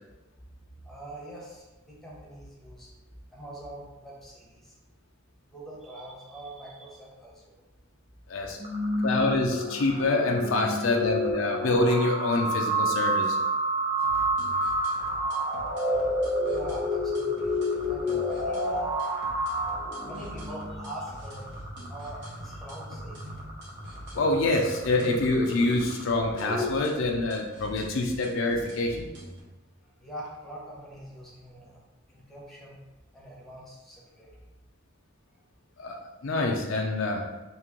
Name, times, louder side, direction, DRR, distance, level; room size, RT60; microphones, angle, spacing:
voice 1, 0.8-2.9 3.3-4.7 5.5-7.6 10.7-10.8 15.9-16.1 16.5-17.5 17.8-19.0 19.5-19.6 20.0-21.5 21.9-23.2 30.0-31.8 32.1-32.8 33.1-34.4, right 1 dB, ahead, -5 dB, 0.9 m, -43 dB
sound 1, 8.6-26.8, equal, 25° right, 0.5 m, -30 dB
voice 2, 9.0-13.4 24.1-29.1 35.8-37.2, left 2 dB, 70° left, 1 dB, 0.5 m, -26 dB
sound 2, 14.0-29.4, right 1 dB, 60° right, 0.9 m, -46 dB
3.0 x 2.9 x 3.6 m, 1.1 s
head